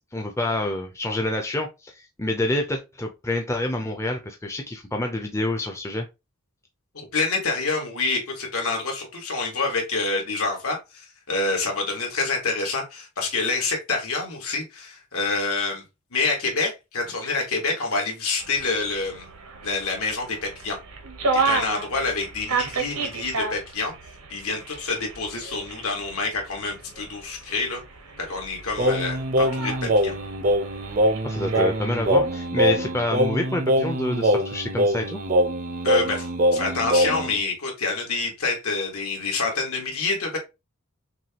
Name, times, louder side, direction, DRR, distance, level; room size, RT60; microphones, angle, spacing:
voice 1, 0.1-6.0 17.2-17.3 31.2-35.2, left 1 dB, 10° left, 0.5 m, -27 dB
voice 2, 6.9-10.8 11.3-15.8 16.1-19.3 19.6-20.8 21.3-23.9 24.3-27.8 28.2-30.1 35.8-40.4, left 3 dB, 75° left, 1.8 m, -27 dB
sound 1, 18.4-32.3, right 4 dB, 80° right, 1.0 m, -33 dB
Singing, 28.8-37.4, equal, 40° right, 0.5 m, -23 dB
6.0 x 2.3 x 2.9 m
head